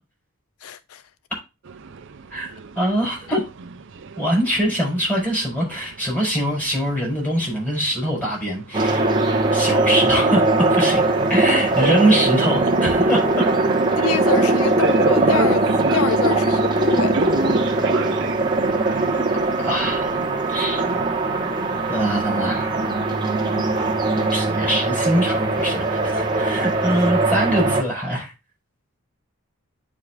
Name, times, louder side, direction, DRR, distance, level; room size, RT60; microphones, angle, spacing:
voice 1, 0.6-1.0 14.0-17.2 27.0-27.1, left 6 dB, 75° left, 0.5 m, -26 dB
sound 1, 1.6-21.0, right 4 dB, 55° right, 0.6 m, -33 dB
voice 2, 2.3-3.4 4.2-9.0 9.5-11.0 11.3-13.4 17.9-18.1 19.3-20.1 20.5-20.8 21.9-22.7 24.3-28.3, equal, 10° left, 4.6 m, -23 dB
sound 2, 8.7-27.8, right 2 dB, 20° right, 1.3 m, -20 dB
9.5 x 5.0 x 2.4 m
head